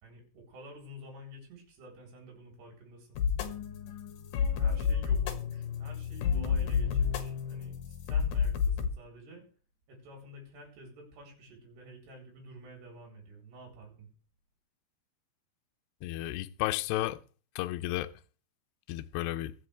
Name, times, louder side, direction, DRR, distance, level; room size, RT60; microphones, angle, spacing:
voice 1, 0.0-3.2 4.6-9.4 9.9-14.1, right 1 dB, 70° right, 6.1 m, -50 dB
sound 1, 3.2-8.9, left 7 dB, 60° left, 2.5 m, -30 dB
voice 2, 16.0-17.2 17.6-18.1 18.9-19.5, left 16 dB, 80° left, 2.7 m, -32 dB
23.0 x 7.9 x 3.4 m
omnidirectional pair, 5.0 m